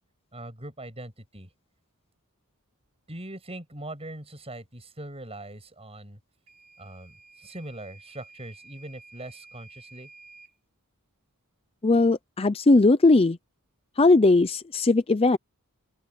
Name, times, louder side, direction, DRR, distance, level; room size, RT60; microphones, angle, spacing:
voice 1, 0.3-1.5 3.1-6.2 6.8-10.1, right 1 dB, 25° right, 7.9 m, -41 dB
Microwave oven / Alarm, 6.5-10.6, right 3 dB, 85° right, 5.2 m, -52 dB
voice 2, 11.8-13.4 14.0-15.4, left 3 dB, 25° left, 0.5 m, -19 dB
open air
head